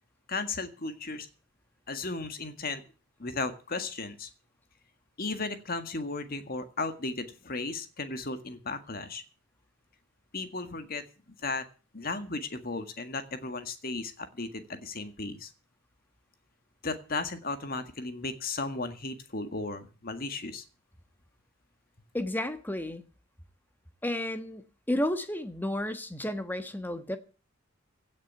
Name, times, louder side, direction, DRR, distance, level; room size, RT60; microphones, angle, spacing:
voice 1, 0.3-1.3 1.9-2.8 3.2-4.3 5.2-9.2 10.3-11.0 11.4-11.6 11.9-15.5 16.8-20.6, left 3 dB, 45° left, 1.8 m, -35 dB
voice 2, 22.1-23.0 24.0-27.2, left 1 dB, 10° left, 1.4 m, -32 dB
16.5 x 6.5 x 8.2 m
head